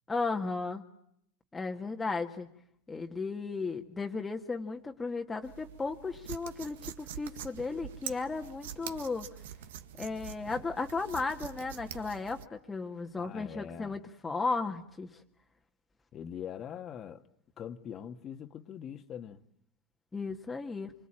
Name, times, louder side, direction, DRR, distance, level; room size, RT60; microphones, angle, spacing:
voice 1, 0.1-0.8 1.5-2.5 2.9-9.3 10.0-15.1 20.1-20.9, left 4 dB, 15° left, 1.8 m, -35 dB
sound 1, 5.4-12.4, right 10 dB, 80° right, 1.8 m, -45 dB
voice 2, 13.2-14.0 16.1-17.2 17.6-19.4, left 9 dB, 35° left, 1.7 m, -42 dB
26.5 x 24.5 x 8.9 m
supercardioid pair, 120°, 0 cm